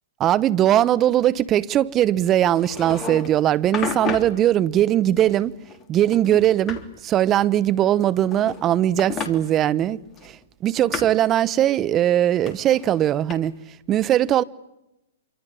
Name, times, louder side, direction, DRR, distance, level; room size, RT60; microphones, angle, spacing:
voice 1, 0.2-5.5 5.9-10.0 10.2-10.4 10.6-13.5 13.9-14.4, right 12 dB, 25° right, 1.0 m, -20 dB
sound 1, 2.6-3.4 3.7-4.4 5.2-5.9 6.1-6.9 8.0-8.7 9.0-9.3 10.2-11.2 12.5-13.3, left 5 dB, 25° left, 3.3 m, -32 dB
27.0 x 25.0 x 8.6 m
hypercardioid pair, 120°, 0 cm